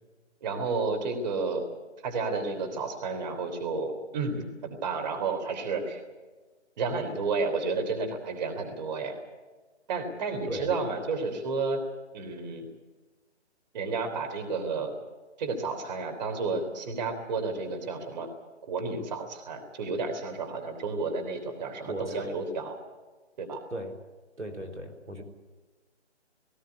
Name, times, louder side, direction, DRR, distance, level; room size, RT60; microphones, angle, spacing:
voice 1, 0.4-1.7 2.0-6.0 6.8-9.2 9.9-11.8 12.1-12.7 13.7-14.9 15.4-18.3 18.7-22.8 23.4-23.6, right 4 dB, 40° right, 5 dB, 3.6 m, -31 dB
voice 2, 21.9-22.3 23.7-24.0 24.4-25.2, right 1 dB, 80° right, 7 dB, 4.0 m, -37 dB
18.5 x 17.5 x 9.9 m, 1.3 s
figure-of-eight pair, 150°, 35 cm